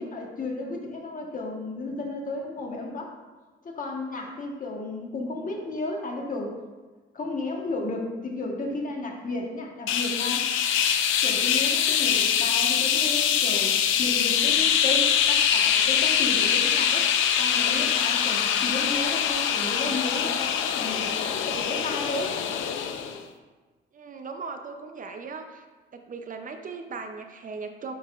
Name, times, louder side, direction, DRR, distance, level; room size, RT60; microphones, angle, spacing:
voice 1, 0.0-3.2 3.6-6.5 7.1-10.5 11.2-17.1 17.4-22.4, left 2 dB, 40° left, 0 dB, 1.3 m, -33 dB
sound 1, 9.9-23.2, left 8 dB, 85° left, 0.5 m, -24 dB
voice 2, 23.9-25.6 25.9-27.9, right 4 dB, 45° right, 6 dB, 0.5 m, -38 dB
10.0 x 4.0 x 2.4 m, 1.3 s
cardioid pair, 90°, 20 cm